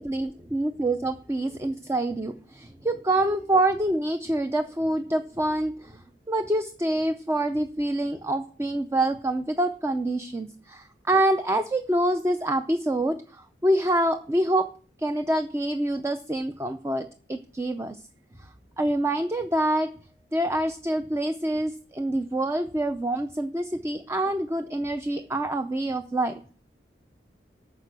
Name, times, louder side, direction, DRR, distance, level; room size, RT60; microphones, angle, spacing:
voice 1, 0.0-14.7 15.0-18.0 18.4-18.5 18.8-19.9 20.3-26.4, right 1 dB, 15° right, 8 dB, 0.5 m, -26 dB
9.5 x 6.6 x 6.1 m, 0.42 s
head